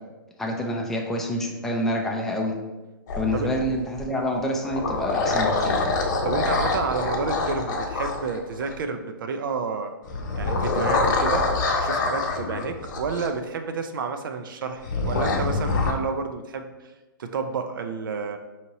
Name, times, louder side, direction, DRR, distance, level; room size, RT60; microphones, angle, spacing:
voice 1, 0.4-2.5 3.2-5.8, equal, 5° left, 0 dB, 0.4 m, -27 dB
sound 1, 3.1-4.0 4.5-8.8 10.0-13.3 14.8-15.9, left 3 dB, 55° left, 0.7 m, -25 dB
voice 2, 6.2-9.9 10.4-11.4 11.8-16.9 17.2-18.4, right 5 dB, 70° right, 6 dB, 0.4 m, -30 dB
5.1 x 2.8 x 2.9 m, 1.1 s
hypercardioid pair, 140°, 12 cm